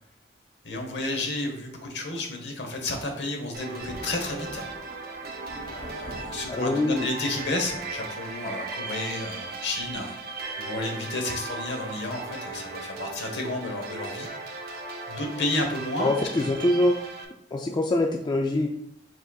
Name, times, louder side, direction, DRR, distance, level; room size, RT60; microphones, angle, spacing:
voice 1, 0.6-4.7 5.6-10.1 10.6-14.3 15.1-16.1, left 2 dB, 65° left, 3 dB, 1.0 m, -31 dB
sound 1, 3.5-17.3, right 3 dB, 55° right, 0.6 m, -37 dB
Thunder, 3.7-10.8 11.8-11.9 13.4-13.6 14.0-14.1 16.0-16.3 17.0-17.3, right 1 dB, 80° right, 0.9 m, -48 dB
voice 2, 6.5-7.1 16.0-17.0 17.5-18.7, left 1 dB, 25° left, 1 dB, 0.3 m, -24 dB
4.9 x 4.0 x 2.3 m, 0.75 s
head